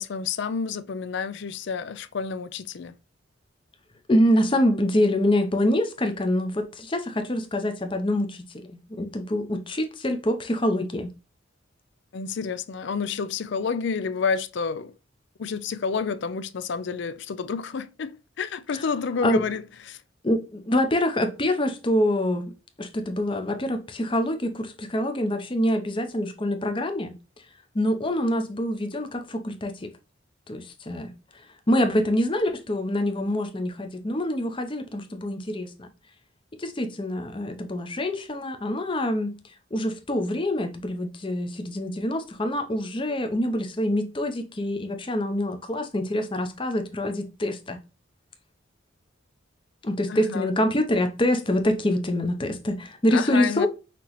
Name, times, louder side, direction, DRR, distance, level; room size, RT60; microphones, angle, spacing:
voice 1, 0.0-2.9 12.1-14.9 15.4-19.6 19.9-20.0 50.1-50.5 53.1-53.7, left 5 dB, 55° left, 0.4 m, -29 dB
voice 2, 4.1-11.1 18.7-18.9 19.2-19.4 20.2-22.5 22.8-27.2 27.7-29.9 30.5-35.9 36.6-47.8 49.8-53.7, left 1 dB, 25° left, 0.7 m, -25 dB
5.9 x 3.0 x 3.0 m
head